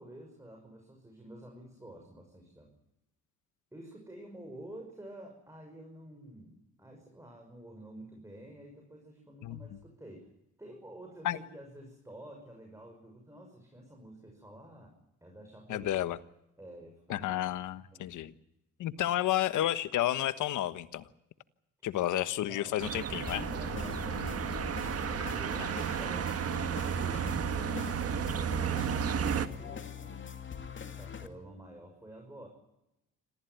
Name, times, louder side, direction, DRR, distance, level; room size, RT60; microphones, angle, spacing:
voice 1, 0.0-2.7 3.7-10.3 10.6-14.9 15.2-15.9 16.6-17.3 17.9-18.2 22.5-22.8 23.5-24.8 25.1-30.3 30.9-32.5, right 1 dB, 10° right, 2 dB, 6.1 m, -50 dB
voice 2, 15.7-16.2 17.1-18.3 18.8-21.1 21.8-23.5, left 13 dB, 80° left, 13 dB, 1.3 m, -31 dB
sound 1, 22.8-29.5, right 8 dB, 50° right, 1.6 m, -33 dB
sound 2, 23.3-31.3, left 5 dB, 40° left, 2.5 m, -42 dB
27.0 x 15.0 x 9.4 m, 0.88 s
cardioid pair, 90°, 30 cm